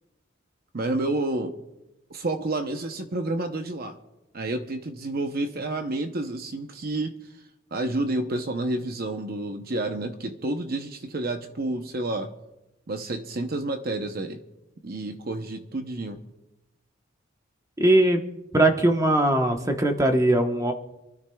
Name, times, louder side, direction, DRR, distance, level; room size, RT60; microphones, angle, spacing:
voice 1, 0.7-1.5 2.1-4.0 4.3-7.3 7.7-12.3 12.9-14.4 14.8-16.2, right 2 dB, 45° right, 6 dB, 0.7 m, -29 dB
voice 2, 17.8-18.2 18.5-20.7, right 1 dB, 15° right, 3 dB, 1.0 m, -20 dB
27.0 x 13.0 x 2.3 m, 0.96 s
head